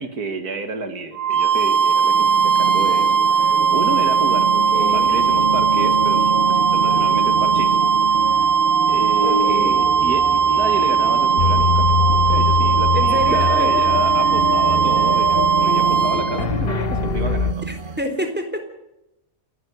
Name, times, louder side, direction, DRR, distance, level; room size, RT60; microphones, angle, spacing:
voice 1, 0.0-4.5 4.9-7.8 8.1-8.5 8.9-17.6, right 3 dB, 75° right, 8 dB, 2.3 m, -30 dB
sound 1, 1.1-16.4, right 6 dB, 55° right, 2.4 m, -18 dB
sound 2, 1.5-18.0, right 3 dB, 35° right, 1.4 m, -29 dB
voice 2, 4.5-5.2 9.2-9.8 12.9-13.9 17.7-18.7, equal, 5° right, 5 dB, 3.8 m, -28 dB
sound 3, 11.4-17.5, left 7 dB, 45° left, 0.9 m, -23 dB
29.0 x 10.5 x 9.4 m, 0.86 s
omnidirectional pair, 1.6 m